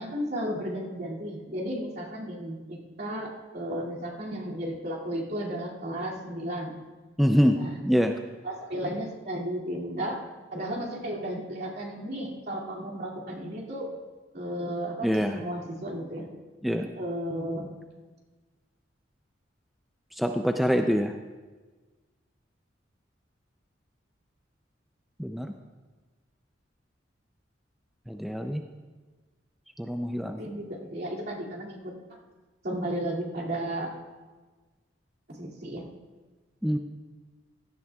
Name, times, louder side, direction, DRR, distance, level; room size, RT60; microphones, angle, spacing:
voice 1, 0.0-6.7 7.6-7.7 8.4-10.2 10.5-13.9 14.3-16.3 16.9-17.7 30.4-31.9 32.6-33.9 35.3-35.9, right 1 dB, 55° right, -4 dB, 2.5 m, -34 dB
voice 2, 7.2-7.6 7.8-8.2 15.0-15.4 16.6-16.9 20.2-21.1 25.2-25.5 28.1-28.6 29.8-30.4 36.6-36.8, equal, ahead, 4 dB, 0.4 m, -25 dB
17.0 x 12.5 x 2.4 m, 1.3 s
head